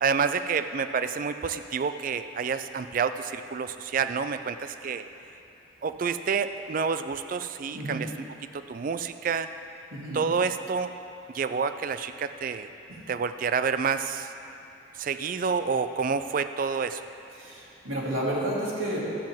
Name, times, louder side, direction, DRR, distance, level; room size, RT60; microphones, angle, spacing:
voice 1, 0.0-5.0 5.8-8.1 8.5-9.5 10.1-10.9 11.3-12.7 13.1-14.3 15.0-17.0, right 5 dB, 40° right, 11 dB, 0.3 m, -28 dB
voice 2, 9.9-10.2 12.9-13.0 17.4-19.0, right 1 dB, 75° right, -7 dB, 2.5 m, -31 dB
13.0 x 9.2 x 3.6 m, 2.7 s
head